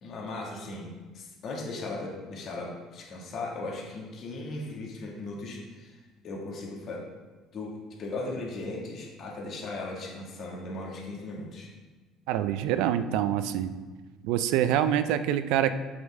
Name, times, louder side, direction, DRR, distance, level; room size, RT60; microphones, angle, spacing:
voice 1, 0.0-0.9 1.1-6.0 6.2-7.0 7.5-11.7, left 2 dB, 55° left, -2 dB, 2.0 m, -37 dB
voice 2, 12.3-13.7 14.2-15.7, right 11 dB, 75° right, 12 dB, 0.4 m, -25 dB
7.3 x 6.2 x 3.7 m, 1.3 s
supercardioid pair, 75°, 0 cm